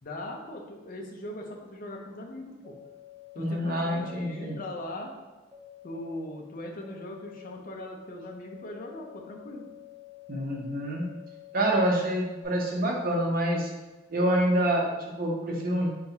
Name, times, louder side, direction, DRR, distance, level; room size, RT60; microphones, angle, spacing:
voice 1, 0.0-2.8 3.3-5.1 5.8-9.7, left 1 dB, 45° left, 1 dB, 0.5 m, -40 dB
sound 1, 2.6-3.4 4.0-4.7 5.5-6.2 6.8-7.5 8.2-12.5, left 14 dB, 5° right, 0.9 m, -49 dB
voice 2, 3.4-4.6 10.3-11.1 11.5-13.7 14.1-15.9, right 1 dB, 50° right, -1 dB, 0.7 m, -27 dB
5.6 x 2.3 x 2.7 m, 1.1 s
head